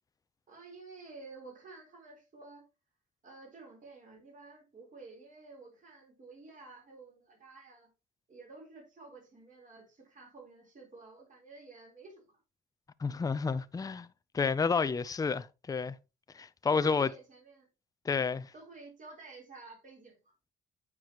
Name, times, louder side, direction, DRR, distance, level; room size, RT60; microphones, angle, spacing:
voice 1, 0.5-2.7 3.2-7.9 8.3-12.3 16.6-17.7 18.5-20.3, right 3 dB, 40° right, 3.8 m, -51 dB
voice 2, 13.0-14.1 14.3-16.0 16.3-17.1 18.1-18.5, left 5 dB, 20° left, 0.4 m, -30 dB
9.2 x 4.7 x 2.9 m
cardioid pair, 90°, 20 cm